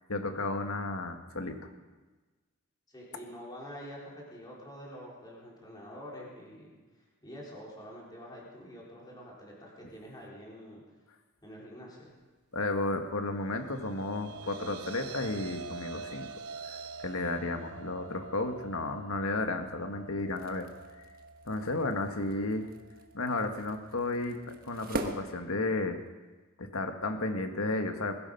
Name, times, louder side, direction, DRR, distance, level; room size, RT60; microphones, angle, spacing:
voice 1, 0.1-1.7 12.5-16.3 16.7-20.6 21.5-22.7 23.1-26.0 26.6-28.1, left 2 dB, 70° left, 5 dB, 1.7 m, -33 dB
voice 2, 2.9-6.8 7.2-10.8 11.4-12.1, equal, 20° left, -5 dB, 4.4 m, -46 dB
sound 1, 13.5-25.8, right 4 dB, 85° right, 1.1 m, -47 dB
sound 2, 20.2-26.2, right 2 dB, 40° right, 1.3 m, -43 dB
21.5 x 12.5 x 5.5 m, 1.2 s
head